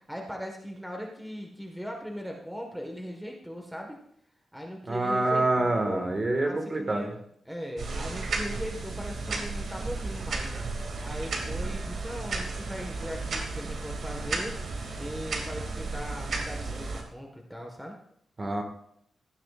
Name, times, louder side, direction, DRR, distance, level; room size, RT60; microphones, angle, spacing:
voice 1, 0.0-4.0 4.5-6.1 6.4-7.2 7.4-10.5 11.0-18.0, equal, ahead, 1 dB, 1.4 m, -39 dB
voice 2, 4.9-7.1 18.4-18.6, right 2 dB, 25° right, 4 dB, 1.7 m, -26 dB
sound 1, 7.8-17.0, right 3 dB, 60° right, 2.4 m, -33 dB
16.5 x 12.0 x 2.5 m, 0.69 s
wide cardioid pair, 155°, 0 cm